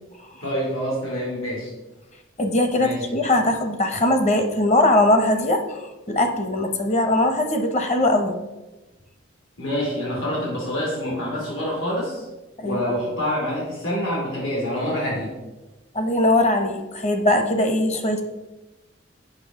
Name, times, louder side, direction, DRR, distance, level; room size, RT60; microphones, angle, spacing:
voice 1, 0.4-1.7 2.8-3.0 9.6-12.2 12.6-15.3, equal, 85° left, -3 dB, 2.4 m, -26 dB
voice 2, 2.4-8.3 12.6-12.9 15.9-18.2, left 1 dB, 35° left, 6 dB, 0.7 m, -21 dB
7.6 x 5.6 x 3.6 m, 1.1 s
head